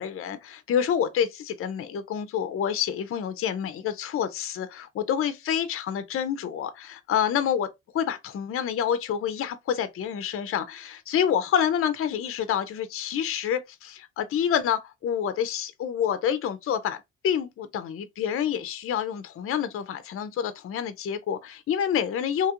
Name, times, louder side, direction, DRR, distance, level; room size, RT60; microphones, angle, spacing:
voice 1, 0.0-22.5, left 8 dB, 50° left, 0.5 m, -28 dB
2.9 x 2.3 x 2.8 m
cardioid pair, 90°, 30 cm